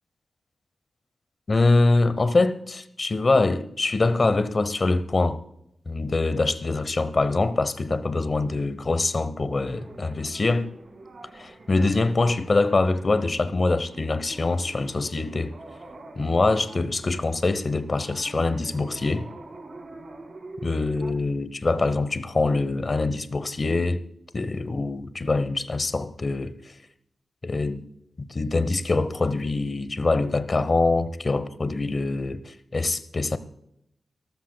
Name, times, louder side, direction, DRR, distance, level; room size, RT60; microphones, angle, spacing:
voice 1, 1.5-5.4 5.9-10.7 11.3-15.5 16.2-19.3 20.6-24.0 24.3-26.5 27.4-27.8 28.3-33.4, left 3 dB, 30° left, 0.8 m, -24 dB
sound 1, 9.7-21.1, right 2 dB, 40° right, 2.0 m, -45 dB
25.0 x 13.5 x 2.2 m
wide cardioid pair, 175°, 0 cm